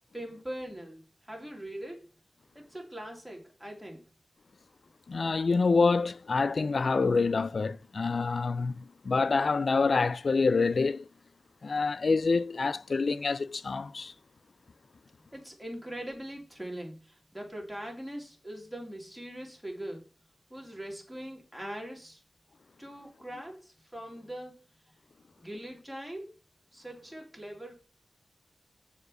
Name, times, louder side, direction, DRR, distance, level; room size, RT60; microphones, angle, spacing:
voice 1, 0.1-2.1 2.5-4.0 15.3-20.0 20.5-22.2 22.8-24.6 25.4-26.3 26.7-27.7, right 1 dB, ahead, 2.7 m, -41 dB
voice 2, 5.1-11.1 11.6-14.1, left 4 dB, 60° left, 0.3 m, -27 dB
6.5 x 4.9 x 6.3 m
wide cardioid pair, 70°, 0 cm